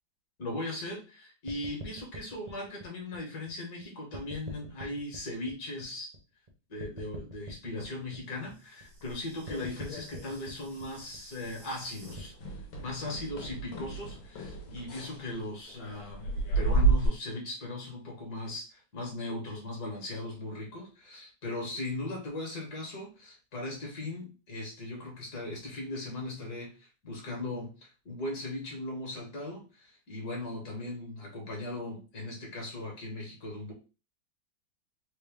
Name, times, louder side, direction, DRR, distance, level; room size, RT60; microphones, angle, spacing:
voice 1, 0.4-6.1 6.7-16.3 16.6-33.7, left 2 dB, 55° left, 0 dB, 1.6 m, -38 dB
sound 1, 1.5-3.8 4.1-6.5 6.8-12.2, right 1 dB, 70° right, 0.3 m, -46 dB
sound 2, 9.0-10.5 10.7-11.1 11.4-11.6 12.0-17.1, right 3 dB, 80° left, 1.7 m, -32 dB
3.9 x 2.2 x 3.5 m, 0.33 s
omnidirectional pair, 2.1 m